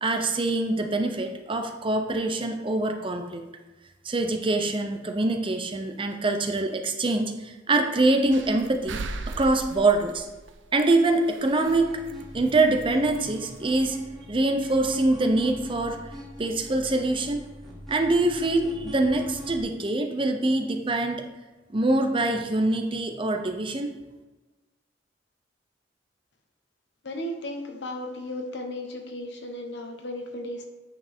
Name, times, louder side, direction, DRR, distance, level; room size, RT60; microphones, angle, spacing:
voice 1, 0.0-3.4 4.0-10.3 10.7-12.0 12.3-14.0 14.3-16.0 16.4-17.4 17.9-21.2 21.7-23.9, right 2 dB, 30° right, 5 dB, 0.6 m, -24 dB
sound 1, 8.3-11.8 12.1-12.2 12.5-13.5 13.7-13.9, right 3 dB, 85° right, 0.6 m, -38 dB
sound 2, 11.6-19.6, equal, ahead, 2.4 m, -42 dB
voice 2, 27.0-30.6, left 1 dB, 70° left, 4 dB, 1.1 m, -35 dB
9.0 x 5.6 x 3.6 m, 1.2 s
head